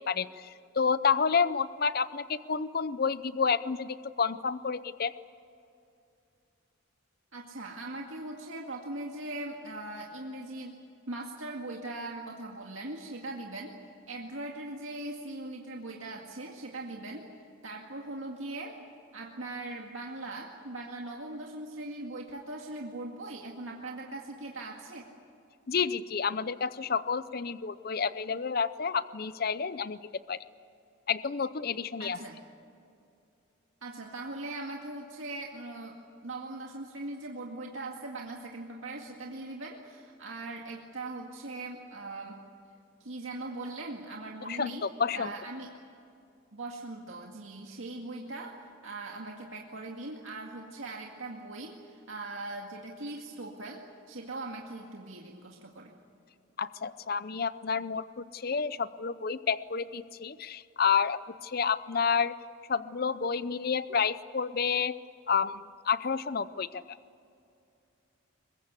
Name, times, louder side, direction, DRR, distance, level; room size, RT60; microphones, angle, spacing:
voice 1, 0.1-5.1 25.7-30.0 30.3-30.4 31.1-32.2 44.5-45.3 56.6-62.3 62.7-64.9 65.3-67.0, left 6 dB, 45° left, 15 dB, 0.6 m, -30 dB
voice 2, 7.3-10.8 11.1-13.7 14.1-17.3 17.6-18.8 19.1-25.1 32.0-32.4 33.8-36.0 36.2-42.4 43.0-44.9 45.1-45.7 46.5-55.9, right 2 dB, 75° right, 0 dB, 2.1 m, -40 dB
23.5 x 21.5 x 8.3 m, 2.6 s
head